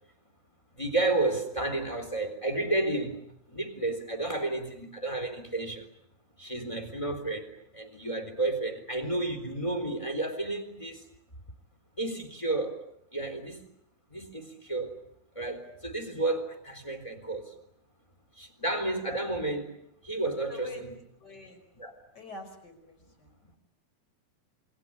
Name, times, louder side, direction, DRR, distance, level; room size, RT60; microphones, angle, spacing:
voice 1, 0.8-3.2 3.5-5.9 6.4-11.0 12.0-12.7 13.1-13.6 14.1-14.9 15.3-17.4 18.4-19.7 20.0-20.9 21.8-21.9, right 2 dB, 10° left, 6 dB, 3.4 m, -31 dB
voice 2, 20.5-20.9 21.2-21.6 22.1-23.3, left 3 dB, 25° left, 5 dB, 5.6 m, -45 dB
28.0 x 23.5 x 8.7 m, 0.72 s
omnidirectional pair, 4.2 m